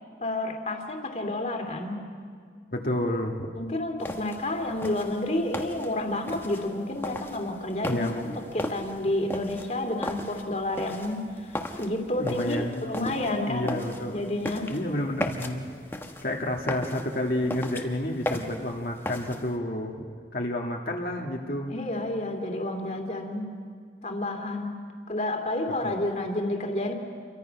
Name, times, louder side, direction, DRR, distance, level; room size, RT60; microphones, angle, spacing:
voice 1, 0.2-2.0 3.5-13.8 14.1-14.7 21.7-23.5 24.0-24.8 25.1-27.0, left 1 dB, 40° left, 3 dB, 2.4 m, -30 dB
voice 2, 2.7-3.5 7.8-8.4 12.2-14.2 14.7-15.7 16.2-20.0 20.3-21.7 25.8-25.9, left 1 dB, 55° left, 0 dB, 1.6 m, -30 dB
sound 1, 4.0-19.6, left 1 dB, 15° left, 1.2 m, -37 dB
28.5 x 23.5 x 5.7 m, 2.1 s
head